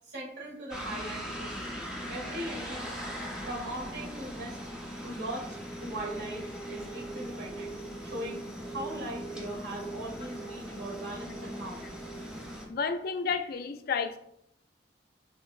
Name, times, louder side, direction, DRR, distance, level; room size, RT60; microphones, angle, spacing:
voice 1, 0.1-2.9 3.4-4.6 5.0-7.7 8.0-12.0, right 1 dB, 90° right, -3 dB, 1.5 m, -40 dB
sound 1, 0.7-12.6, right 1 dB, 5° right, 0.8 m, -39 dB
voice 2, 12.7-14.2, left 5 dB, 60° left, 8 dB, 0.4 m, -31 dB
6.1 x 2.7 x 2.4 m, 0.75 s
head